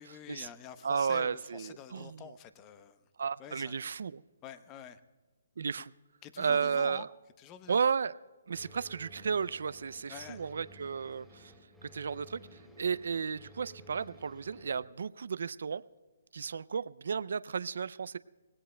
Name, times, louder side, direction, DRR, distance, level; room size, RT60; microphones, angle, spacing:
voice 1, 0.0-3.0 3.4-3.9 4.4-5.0 6.2-7.1 7.4-7.8 10.1-10.5, left 9 dB, 20° left, 12 dB, 0.8 m, -48 dB
voice 2, 0.8-2.2 3.2-4.2 5.6-5.9 6.4-7.1 7.7-8.1 8.5-11.5 11.8-12.4 12.8-15.8 16.3-18.2, right 6 dB, 70° right, 17 dB, 0.3 m, -33 dB
sound 1, 8.5-14.9, equal, 5° left, 3.3 m, -55 dB
24.5 x 19.0 x 2.2 m, 1.3 s
hypercardioid pair, 150°, 0 cm